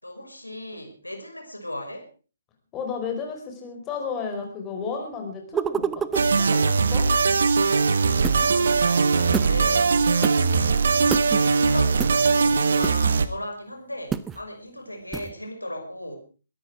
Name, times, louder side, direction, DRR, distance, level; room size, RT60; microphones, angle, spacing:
voice 1, 0.0-2.1 8.2-10.0 10.7-16.2, left 1 dB, 85° left, 4 dB, 5.8 m, -37 dB
voice 2, 2.7-7.1, left 5 dB, 20° left, 3 dB, 4.8 m, -33 dB
sound 1, 5.5-6.3 8.2-8.5 9.3-9.6 10.2-10.3 11.1-11.4 12.0-12.1 12.8-13.1 14.1-14.4 15.1-15.3, right 7 dB, 10° right, 0.7 m, -28 dB
sound 2, 6.1-13.3, right 4 dB, 55° right, 1.6 m, -20 dB
22.0 x 13.5 x 4.9 m, 0.38 s
figure-of-eight pair, 135°, 0 cm